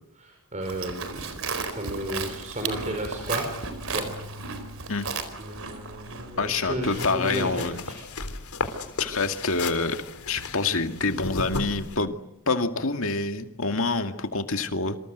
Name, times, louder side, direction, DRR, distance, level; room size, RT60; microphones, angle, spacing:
voice 1, 0.2-1.3 1.6-3.4 3.9-4.1 5.4-8.0, right 1 dB, 35° right, 3 dB, 5.1 m, -33 dB
Livestock farm animals working animals, 0.6-7.1, right 4 dB, 65° right, 4.3 m, -35 dB
voice 2, 6.4-7.8 9.0-10.0 10.3-12.1 12.5-15.0, left 3 dB, 65° left, 6 dB, 2.3 m, -26 dB
sound 1, 6.8-12.0, left 3 dB, 85° left, 3.5 m, -35 dB
28.0 x 26.0 x 8.1 m, 0.79 s
head